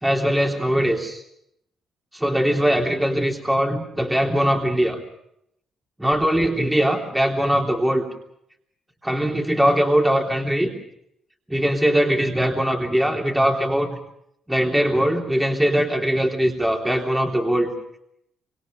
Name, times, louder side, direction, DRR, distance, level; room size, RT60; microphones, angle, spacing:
voice 1, 0.0-1.2 2.1-5.0 6.0-8.0 9.0-10.7 11.5-14.0 14.5-17.7, equal, 10° right, 1 dB, 3.4 m, -21 dB
25.5 x 25.0 x 5.3 m, 0.75 s
cardioid pair, 90°, 0 cm